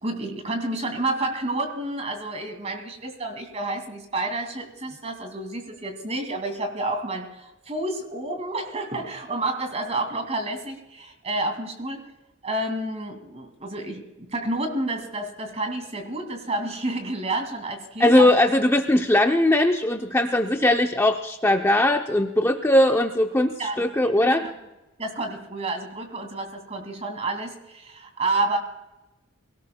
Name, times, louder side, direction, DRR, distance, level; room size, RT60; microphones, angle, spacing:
voice 1, 0.0-12.0 12.4-18.3 23.6-24.5 25.0-28.6, right 2 dB, 30° right, 5 dB, 2.3 m, -30 dB
voice 2, 18.0-24.4, left 1 dB, 10° left, 4 dB, 0.6 m, -20 dB
23.5 x 17.5 x 2.2 m, 1.0 s
head